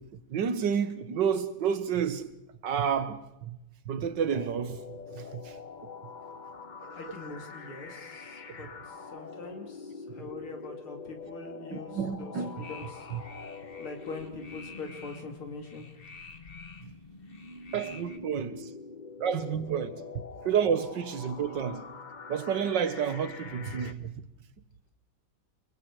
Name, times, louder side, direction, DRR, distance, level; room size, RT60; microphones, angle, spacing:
voice 1, 0.3-2.3 2.6-3.6 3.9-4.8 5.1-5.5 6.8-7.0 11.7-12.7 13.1-13.2 17.7-18.7 19.2-20.0 20.4-21.9 22.3-24.2, right 7 dB, 60° right, 1.9 m, -30 dB
sound 1, 4.3-23.9, left 4 dB, 65° left, 0.4 m, -45 dB
voice 2, 7.0-13.1 13.8-15.9, left 3 dB, 85° left, 3.8 m, -43 dB
sound 2, 12.6-18.2, left 4 dB, 30° left, 1.4 m, -50 dB
29.5 x 24.0 x 4.8 m
omnidirectional pair, 2.3 m